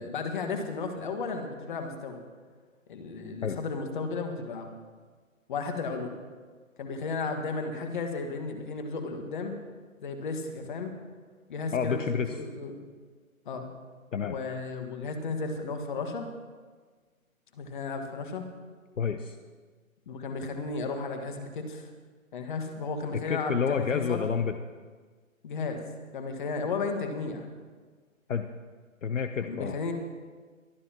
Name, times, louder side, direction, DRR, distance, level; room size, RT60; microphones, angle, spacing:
voice 1, 0.0-2.2 2.9-4.7 5.5-6.1 6.8-9.5 10.0-10.9 11.5-12.7 13.5-13.7 14.2-16.3 17.5-18.5 20.1-21.9 22.3-24.2 25.4-25.8 26.1-27.5 29.4-29.9, left 4 dB, 35° left, 5 dB, 1.7 m, -34 dB
voice 2, 11.7-12.3 14.1-14.4 19.0-19.4 23.1-24.5 28.3-28.5 29.0-29.8, left 6 dB, 65° left, 8 dB, 0.9 m, -29 dB
22.5 x 12.5 x 3.0 m, 1.5 s
figure-of-eight pair, 150°, 42 cm